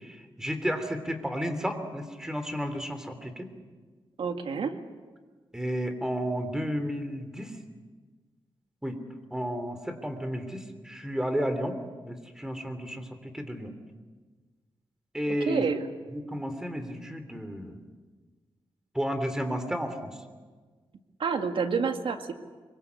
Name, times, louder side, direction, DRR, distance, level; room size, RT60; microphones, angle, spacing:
voice 1, 0.0-3.5 5.5-7.6 8.8-9.0 9.3-11.8 12.0-13.7 15.1-15.6 16.1-17.8 18.9-20.2, equal, 5° right, 8 dB, 3.3 m, -32 dB
voice 2, 4.2-4.7 15.5-15.8 21.2-22.3, right 5 dB, 75° right, 6 dB, 2.0 m, -28 dB
24.5 x 23.0 x 8.3 m, 1.4 s
cardioid pair, 90°, 9 cm